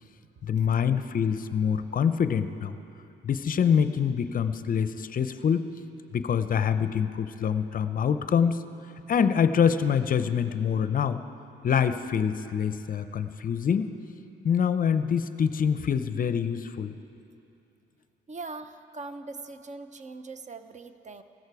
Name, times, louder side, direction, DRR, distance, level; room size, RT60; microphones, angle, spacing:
voice 1, 0.4-2.8 3.2-5.7 6.1-8.6 9.1-11.2 11.6-13.9 14.4-16.9, left 7 dB, 45° left, 11 dB, 0.5 m, -25 dB
voice 2, 18.3-21.2, right 3 dB, 35° right, 10 dB, 0.7 m, -41 dB
15.5 x 13.5 x 4.7 m, 2.8 s
cardioid pair, 90°, 20 cm